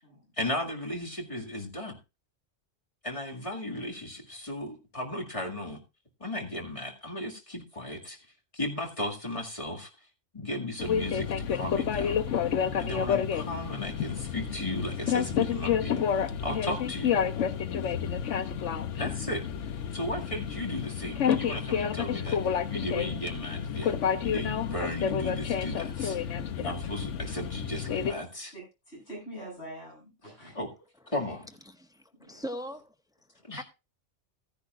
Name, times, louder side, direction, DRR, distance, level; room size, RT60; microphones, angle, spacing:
voice 1, 0.4-2.0 3.0-5.8 6.2-8.2 8.5-9.9 10.3-12.3 12.8-17.1 19.0-19.4 19.9-24.0 24.2-26.2 26.6-28.5 30.5-30.7 31.1-31.4 33.5-33.6, left 1 dB, 30° left, 2.1 m, -35 dB
sound 1, 10.8-28.1, left 8 dB, 85° left, 1.1 m, -30 dB
voice 2, 17.6-18.0 26.0-26.5 28.0-30.6 32.2-32.4, right 1 dB, 65° left, 7.6 m, -46 dB
voice 3, 31.7-32.9 33.6-33.7, equal, 5° right, 0.3 m, -40 dB
15.5 x 10.0 x 2.4 m
omnidirectional pair, 1.2 m